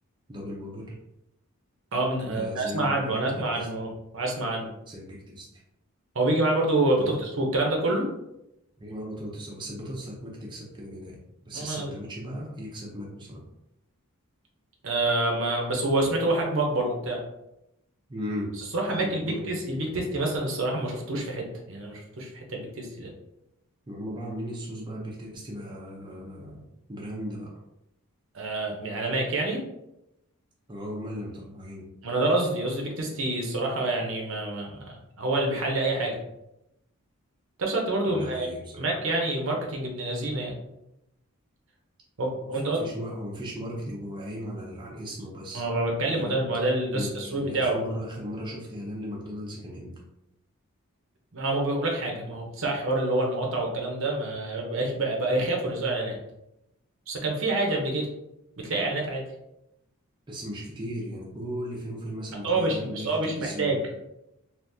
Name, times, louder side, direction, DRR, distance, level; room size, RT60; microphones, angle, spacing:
voice 1, 0.3-1.0 2.2-3.7 4.9-5.5 7.0-7.2 8.8-13.4 18.1-18.5 18.9-19.6 23.9-26.6 26.9-27.5 30.7-31.8 38.1-38.9 42.4-45.6 46.1-46.4 46.9-49.9 60.3-63.8, equal, 20° right, -4 dB, 0.5 m, -37 dB
voice 2, 1.9-4.7 6.1-8.1 11.5-11.9 14.8-17.2 18.7-23.1 28.3-29.6 32.0-36.2 37.6-38.5 38.8-40.5 42.2-42.8 45.5-47.7 51.3-56.2 57.1-58.1 58.6-59.3 62.4-63.9, right 2 dB, 65° right, 0 dB, 0.7 m, -27 dB
3.5 x 2.5 x 2.6 m, 0.87 s
head